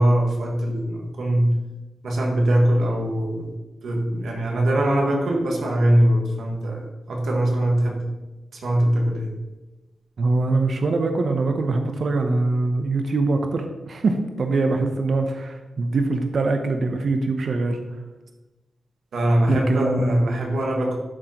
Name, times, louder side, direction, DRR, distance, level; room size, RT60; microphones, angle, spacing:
voice 1, 0.0-1.5 2.0-3.5 3.8-6.8 7.1-8.1 8.5-9.4 19.1-21.0, right 1 dB, 80° right, 0 dB, 1.4 m, -21 dB
voice 2, 10.2-17.8 19.5-20.3, right 3 dB, 60° right, 5 dB, 0.7 m, -23 dB
11.0 x 3.8 x 2.9 m, 1.1 s
cardioid pair, 70°, 0 cm